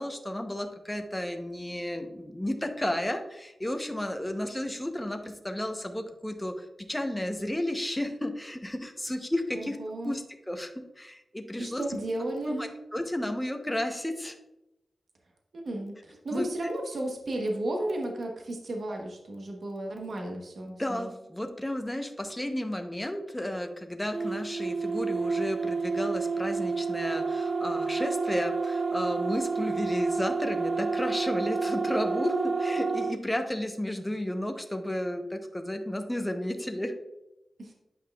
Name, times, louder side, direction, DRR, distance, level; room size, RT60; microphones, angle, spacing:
voice 1, 0.0-9.8 10.0-11.8 12.5-14.4 16.3-16.7 20.7-36.9, left 1 dB, 10° left, 6 dB, 0.7 m, -33 dB
voice 2, 9.5-10.2 11.6-12.7 15.5-21.1 37.6-37.7, right 1 dB, 65° right, 1 dB, 0.9 m, -34 dB
sound 1, 24.1-33.2, right 4 dB, 40° right, 0.3 m, -29 dB
8.5 x 5.5 x 2.3 m, 0.93 s
wide cardioid pair, 90°, 0 cm